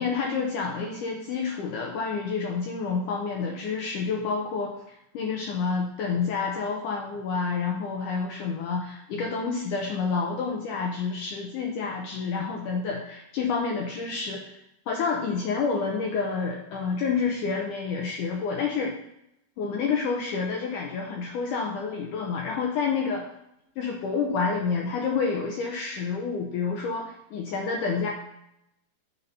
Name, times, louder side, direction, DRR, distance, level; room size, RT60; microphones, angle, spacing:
voice 1, 0.0-14.6 14.9-18.9 19.6-23.2 23.8-28.1, left 5 dB, 80° left, 0 dB, 1.8 m, -29 dB
9.4 x 4.2 x 5.4 m, 0.82 s
omnidirectional pair, 4.7 m